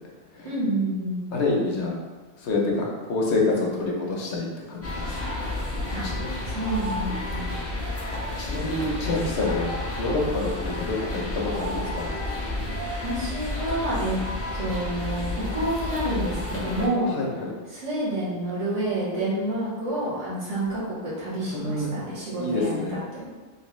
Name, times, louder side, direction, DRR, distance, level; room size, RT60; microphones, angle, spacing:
voice 1, 0.4-1.2 5.9-6.1 6.5-7.7 13.0-14.2 14.5-17.1 17.7-23.3, right 1 dB, 90° right, -9 dB, 1.7 m, -29 dB
voice 2, 1.3-1.9 2.4-5.2 6.0-6.3 8.4-9.7 10.0-12.1 17.1-17.5 21.5-21.9 22.4-23.0, left 2 dB, 70° left, -2 dB, 1.0 m, -27 dB
sound 1, 4.8-16.9, left 2 dB, 20° left, 0.4 m, -31 dB
3.2 x 3.0 x 3.0 m, 1.3 s
omnidirectional pair, 1.2 m